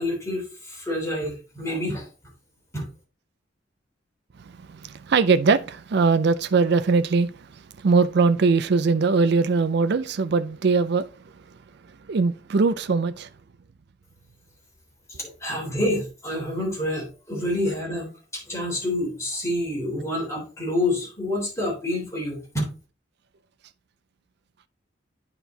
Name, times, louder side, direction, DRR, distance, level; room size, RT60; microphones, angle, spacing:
voice 1, 0.0-2.1 2.7-2.9 15.2-22.6, left 1 dB, 15° left, 3.6 m, -28 dB
voice 2, 4.4-11.1 12.1-13.3, right 4 dB, 60° right, 0.5 m, -21 dB
9.1 x 4.4 x 3.8 m
head